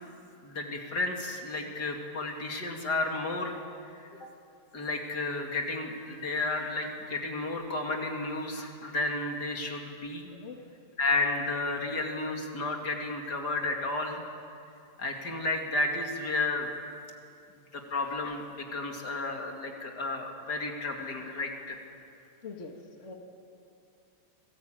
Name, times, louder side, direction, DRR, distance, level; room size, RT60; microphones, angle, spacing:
voice 1, 0.4-3.6 4.0-4.3 4.7-10.3 11.0-14.2 15.0-16.7 17.7-21.8, left 2 dB, 70° left, 2 dB, 3.0 m, -32 dB
voice 2, 22.4-23.2, left 4 dB, 45° left, 2 dB, 2.2 m, -43 dB
26.0 x 19.5 x 9.1 m, 2.5 s
omnidirectional pair, 1.8 m